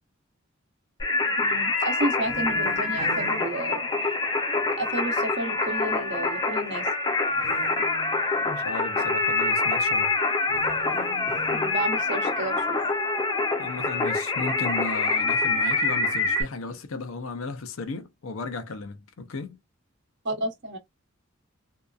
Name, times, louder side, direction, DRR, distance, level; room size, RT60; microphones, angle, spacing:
Singing, 1.0-16.4, left 3 dB, 20° left, 0.6 m, -25 dB
voice 1, 1.4-3.9 4.8-6.9 11.5-12.8 20.2-20.8, right 1 dB, 60° right, 0.8 m, -31 dB
sound 1, 2.2-4.5 7.3-8.6 10.4-12.3, right 1 dB, 15° right, 0.8 m, -43 dB
voice 2, 8.4-10.1 13.6-19.6, left 3 dB, 75° left, 0.6 m, -35 dB
2.8 x 2.3 x 2.3 m
head